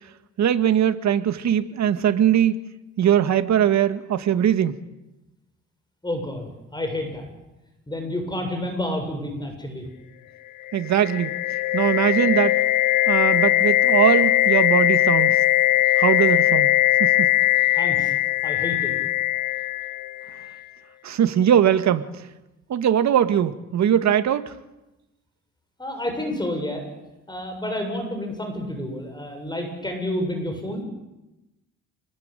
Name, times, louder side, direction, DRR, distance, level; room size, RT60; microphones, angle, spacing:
voice 1, 0.4-2.6 3.0-4.8 10.7-11.4 11.7-12.6 13.1-15.4 16.0-16.7 17.0-17.3 21.0-22.2 22.7-24.5, right 9 dB, 65° right, 1.9 m, -21 dB
voice 2, 6.0-7.3 7.9-9.9 17.6-18.1 18.4-18.9 25.8-26.8 27.3-30.8, left 1 dB, 15° left, 7.3 m, -29 dB
sound 1, 10.7-20.5, left 15 dB, 85° left, 0.9 m, -20 dB
29.5 x 20.5 x 9.2 m
cardioid pair, 90°, 30 cm